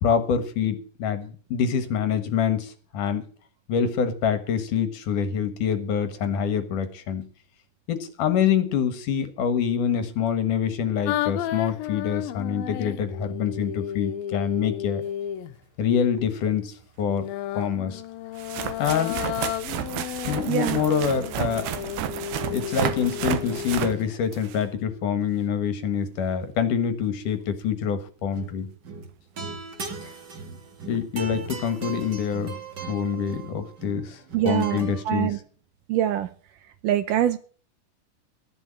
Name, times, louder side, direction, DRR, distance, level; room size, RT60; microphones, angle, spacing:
voice 1, 0.0-3.2 3.7-7.2 7.9-15.0 15.8-17.2 17.6-18.0 18.8-19.2 20.3-21.7 22.5-28.7 30.0-30.1 30.9-32.6 32.9-35.4, left 7 dB, 65° left, 11 dB, 2.7 m, -26 dB
sound 1, 11.1-15.6 17.1-24.1, left 12 dB, 80° left, 2.6 m, -33 dB
sound 2, 16.2-16.3 17.5-17.6 18.4-24.7 29.9-30.0 30.9-31.0 31.2-31.4 33.3-33.4, right 11 dB, 90° right, 3.0 m, -32 dB
voice 2, 20.5-20.8 34.3-34.8 35.1-35.4 35.9-36.3 36.8-37.4, right 11 dB, 75° right, 12 dB, 2.2 m, -23 dB
sound 3, 28.2-28.6 28.8-35.0, right 5 dB, 40° right, 1.8 m, -38 dB
14.0 x 11.0 x 7.4 m, 0.42 s
omnidirectional pair, 4.2 m